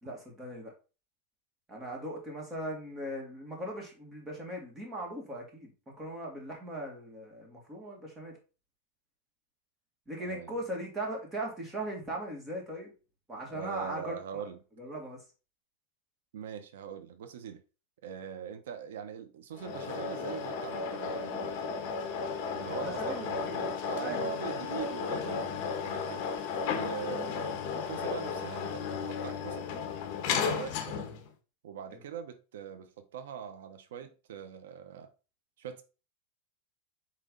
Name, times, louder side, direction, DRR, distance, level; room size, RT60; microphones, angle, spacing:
voice 1, 0.0-0.7 1.7-8.4 10.1-12.9 13.3-14.5 14.8-15.2 22.7-24.4 27.1-27.3 30.7-30.9 31.9-32.0, right 1 dB, 15° right, 2.0 m, -39 dB
voice 2, 13.5-14.6 16.3-17.6 18.0-21.5 22.5-26.2 26.7-29.7 30.4-31.1 31.6-35.1 35.6-35.8, right 8 dB, 85° right, 0.9 m, -42 dB
sound 1, 19.6-31.3, left 5 dB, 40° left, 1.3 m, -34 dB
7.7 x 3.1 x 3.9 m
supercardioid pair, 160°, 0 cm